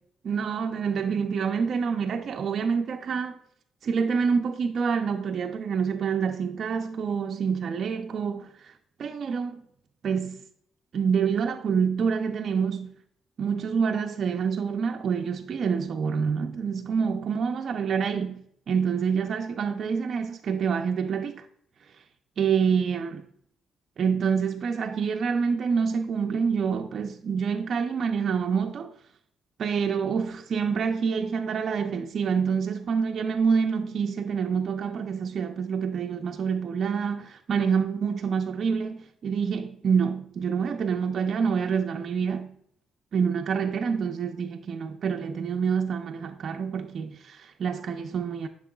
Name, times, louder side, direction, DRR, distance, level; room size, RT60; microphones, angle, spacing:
voice 1, 0.2-3.4 3.8-8.7 9.0-9.6 10.0-10.4 10.9-12.9 13.4-21.4 22.4-23.2 24.0-28.9 29.6-42.5 43.1-48.5, right 6 dB, 55° right, 0.5 m, -27 dB
8.4 x 6.1 x 2.3 m
cardioid pair, 90°, 0 cm